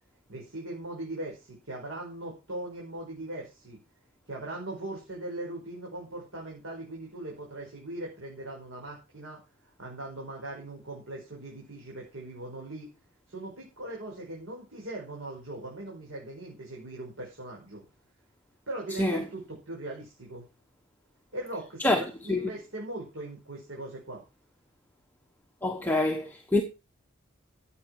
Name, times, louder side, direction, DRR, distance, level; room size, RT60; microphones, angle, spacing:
voice 1, 0.3-3.8 4.3-12.9 13.3-17.8 18.7-20.4 21.3-24.2, right 1 dB, 70° right, 5.2 m, -40 dB
voice 2, 25.6-26.6, left 2 dB, 10° left, 1.2 m, -26 dB
14.5 x 8.5 x 4.8 m
head